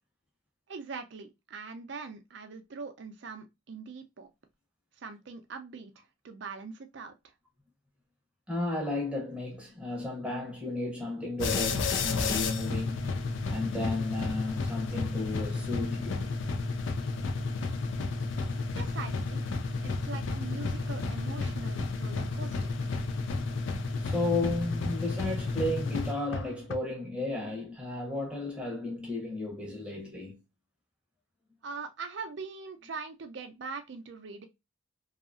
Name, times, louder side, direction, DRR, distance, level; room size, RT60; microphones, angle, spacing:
voice 1, 0.7-4.3 5.0-7.3 18.7-19.5 19.8-22.7 31.6-34.5, right 4 dB, 55° right, 0.4 m, -42 dB
voice 2, 8.5-13.1 13.5-16.3 24.0-30.4, left 2 dB, 5° right, 0.7 m, -33 dB
sound 1, 11.4-26.8, left 3 dB, 65° left, 0.4 m, -32 dB
2.7 x 2.4 x 2.4 m
head